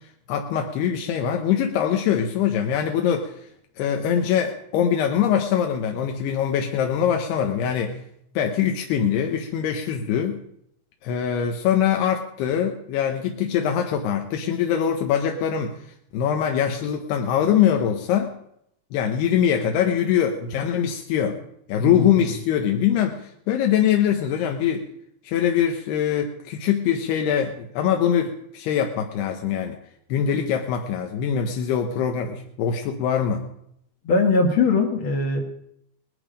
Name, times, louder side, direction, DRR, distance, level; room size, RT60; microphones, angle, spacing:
voice 1, 0.3-3.3 3.8-8.0 8.4-10.4 11.0-15.7 16.1-18.3 18.9-21.4 21.7-24.8 25.2-29.8 30.1-33.4, left 9 dB, 85° left, 3 dB, 3.1 m, -23 dB
voice 2, 21.8-22.1 34.0-35.4, left 4 dB, 65° left, 1 dB, 1.3 m, -20 dB
19.5 x 12.0 x 5.1 m, 0.75 s
omnidirectional pair, 4.6 m